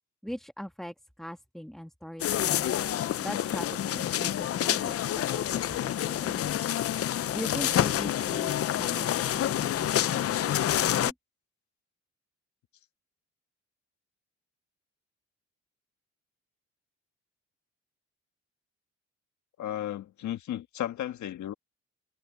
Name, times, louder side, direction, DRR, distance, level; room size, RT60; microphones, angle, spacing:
voice 1, 0.2-2.7 3.2-6.6 7.3-11.1, equal, ahead, 1.4 m, -41 dB
sound 1, 2.2-11.1, left 11 dB, 50° left, 0.6 m, -28 dB
voice 2, 19.6-21.5, left 12 dB, 70° left, 1.5 m, -34 dB
cardioid pair, 90°, 30 cm